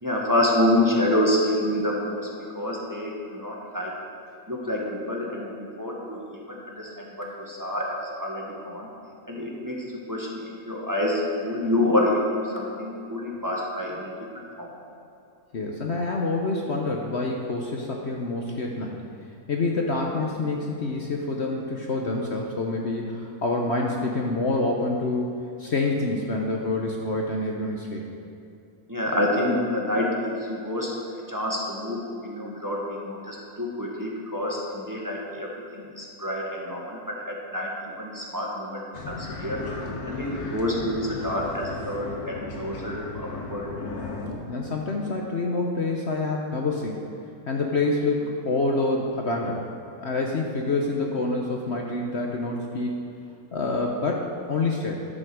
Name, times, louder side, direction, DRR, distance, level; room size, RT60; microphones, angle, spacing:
voice 1, 0.0-2.3 2.5-3.9 4.5-8.9 9.3-14.7 28.9-37.7 38.0-39.6 40.0-43.7, left 1 dB, 15° right, -3 dB, 1.5 m, -28 dB
voice 2, 15.5-19.0 19.5-28.0 44.2-47.1 47.5-49.7 50.0-53.0 53.5-54.9, left 2 dB, 50° left, 0 dB, 1.1 m, -27 dB
sound 1, 38.9-44.3, left 2 dB, 70° left, 1.9 m, -36 dB
11.5 x 7.8 x 6.3 m, 2.8 s
omnidirectional pair, 1.6 m